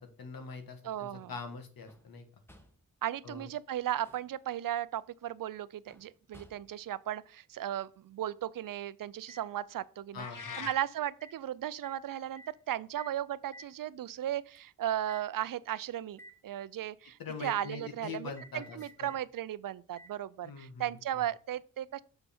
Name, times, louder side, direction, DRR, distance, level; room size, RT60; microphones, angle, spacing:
voice 1, 0.0-2.3 3.2-3.5 10.1-10.7 17.2-19.1 20.4-21.0, left 4 dB, 75° left, 1.5 m, -43 dB
voice 2, 0.8-1.3 3.0-10.2 10.6-22.0, right 12 dB, 65° right, 0.5 m, -36 dB
sound 1, 1.9-2.2 2.5-2.9 3.8-4.4 5.9-6.9 9.3-9.5 10.4-10.6 11.2-11.4 11.8-12.0 12.4-12.6 13.0-13.2 13.5-13.8 14.6-14.7 15.1-15.3 16.1-16.4 17.6-17.8 18.4-19.2 20.0-20.2 21.0-21.1, equal, 5° left, 1.4 m, -54 dB
sound 2, 10.2-10.8, left 6 dB, 60° left, 0.9 m, -41 dB
6.8 x 5.5 x 4.3 m
cardioid pair, 50°, 36 cm